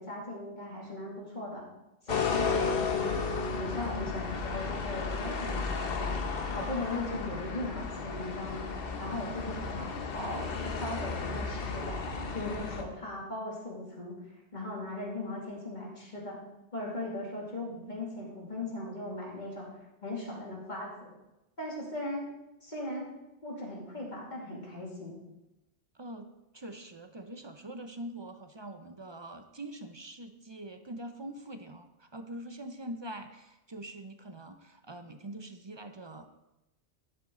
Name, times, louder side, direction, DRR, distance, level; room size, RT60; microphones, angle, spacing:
voice 1, 0.0-1.6 2.0-3.2 3.6-6.2 6.5-8.7 9.0-9.9 10.1-12.0 12.3-14.2 14.5-16.4 16.7-19.7 20.0-21.1 21.6-22.3 22.6-23.1 23.4-25.2, left 2 dB, 40° left, -3 dB, 2.7 m, -38 dB
sound 1, 2.1-12.8, left 5 dB, 55° left, 1.1 m, -33 dB
voice 2, 25.9-26.3 26.5-36.3, right 1 dB, 30° right, 8 dB, 0.5 m, -44 dB
11.5 x 7.9 x 3.8 m, 0.94 s
omnidirectional pair, 1.2 m